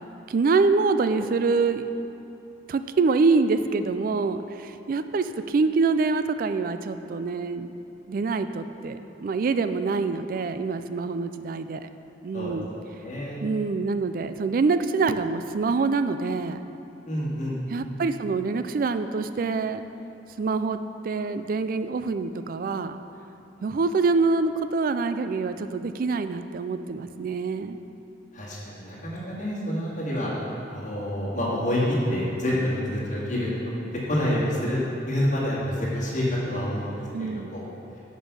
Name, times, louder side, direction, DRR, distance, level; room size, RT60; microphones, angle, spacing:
voice 1, 0.3-1.9 2.7-7.7 8.1-11.9 12.2-12.7 13.4-16.6 17.7-19.8 20.4-20.8 21.0-23.0 23.6-27.8 37.1-37.6, right 4 dB, 50° right, 10 dB, 0.3 m, -25 dB
voice 2, 13.0-13.4 17.1-17.6 28.3-30.3 30.7-33.5 33.9-34.8 35.1-37.6, left 1 dB, 40° left, -7 dB, 2.0 m, -27 dB
7.1 x 5.3 x 6.8 m, 2.9 s
head